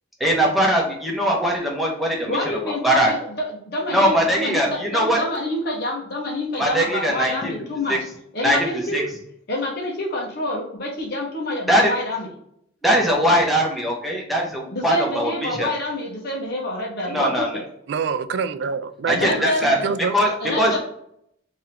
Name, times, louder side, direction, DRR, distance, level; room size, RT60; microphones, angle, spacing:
voice 1, 0.2-2.4 2.8-3.1 3.9-5.2 6.6-7.5 7.9-8.0 8.4-8.6 8.9-9.0 11.7-11.9 12.8-15.7 17.1-17.5 19.1-19.8 20.1-20.3 20.6-20.7, equal, ahead, -2 dB, 1.0 m, -20 dB
voice 2, 2.3-8.1 8.3-9.1 9.5-12.3 14.7-17.6 19.1-19.9 20.2-20.8, left 1 dB, 55° left, -2 dB, 1.1 m, -27 dB
voice 3, 17.9-20.1, right 6 dB, 65° right, 12 dB, 0.3 m, -26 dB
3.6 x 2.9 x 3.3 m, 0.73 s
head